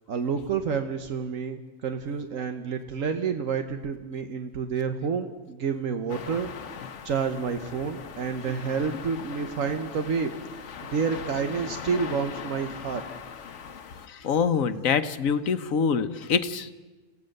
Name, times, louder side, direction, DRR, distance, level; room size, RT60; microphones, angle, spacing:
voice 1, 0.1-10.3 10.8-13.0, right 6 dB, 80° right, 7 dB, 1.4 m, -29 dB
sound 1, 6.1-14.1, left 7 dB, 65° left, 1.2 m, -40 dB
voice 2, 14.1-16.7, left 6 dB, 85° left, 11 dB, 1.4 m, -25 dB
27.0 x 16.5 x 6.6 m, 1.2 s
omnidirectional pair, 1.4 m